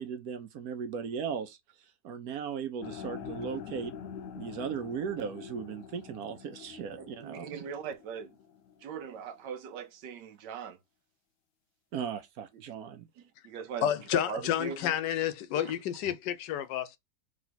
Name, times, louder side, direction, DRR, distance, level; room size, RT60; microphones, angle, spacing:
voice 1, 0.0-1.6 2.0-3.9 4.3-7.6 11.9-13.1, right 7 dB, 65° right, 1.1 m, -37 dB
sound 1, 2.8-8.9, left 8 dB, 65° left, 0.8 m, -45 dB
voice 2, 7.0-8.3 8.8-10.8 12.5-12.6 13.2-14.8 15.5-15.7, right 7 dB, 85° right, 1.4 m, -40 dB
voice 3, 13.8-17.0, left 10 dB, 85° left, 1.3 m, -30 dB
3.8 x 3.2 x 3.9 m
omnidirectional pair, 1.8 m